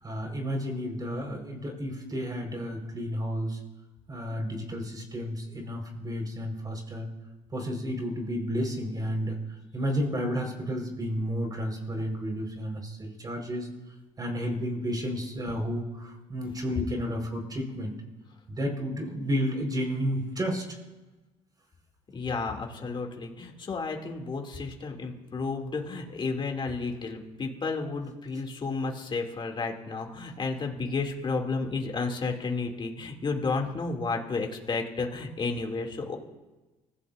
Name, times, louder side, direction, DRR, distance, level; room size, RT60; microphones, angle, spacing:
voice 1, 0.0-3.6 4.1-7.0 7.5-9.4 9.7-13.7 14.2-17.9 18.5-20.6, equal, 30° right, 2 dB, 4.9 m, -31 dB
voice 2, 22.1-36.2, left 4 dB, 35° left, 2 dB, 2.8 m, -32 dB
25.5 x 15.5 x 2.7 m, 1.1 s
supercardioid pair, 70°, 14 cm